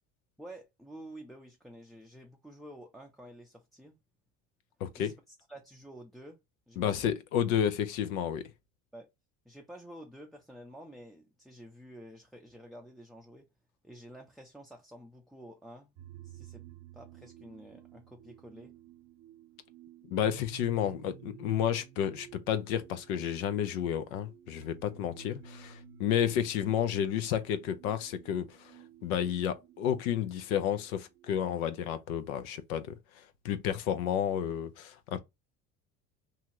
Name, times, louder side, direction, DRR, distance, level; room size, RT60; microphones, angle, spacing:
voice 1, 0.4-4.0 5.0-6.4 6.7-7.0 8.9-9.1 9.5-13.5 13.8-15.9 16.2-16.6 16.9-18.7, right 1 dB, ahead, 0.4 m, -50 dB
voice 2, 4.8-5.1 6.8-8.4 20.1-28.7 29.0-35.2, left 9 dB, 85° left, 0.6 m, -31 dB
sound 1, 15.9-31.5, right 9 dB, 80° right, 0.8 m, -53 dB
2.8 x 2.4 x 2.8 m
hypercardioid pair, 75°, 41 cm